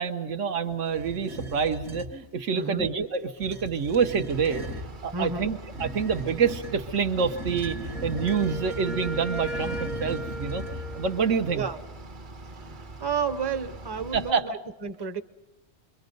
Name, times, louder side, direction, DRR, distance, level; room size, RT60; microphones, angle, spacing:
voice 1, 0.0-4.6 5.0-11.7 14.1-14.5, right 6 dB, 85° right, 7 dB, 1.4 m, -27 dB
sound 1, 0.9-2.2 3.3-4.9 5.7-11.2, right 1 dB, 60° right, 1.3 m, -38 dB
voice 2, 2.5-2.9 5.1-5.5 11.5-11.8 12.5-15.2, right 5 dB, 25° right, 9 dB, 0.7 m, -32 dB
Bus / Idling, 4.3-14.3, right 2 dB, 45° right, 1.1 m, -43 dB
Wind instrument woodwind instrument, 7.9-11.8, equal, ahead, 0.3 m, -37 dB
27.5 x 23.0 x 5.3 m, 0.98 s
omnidirectional pair, 1.2 m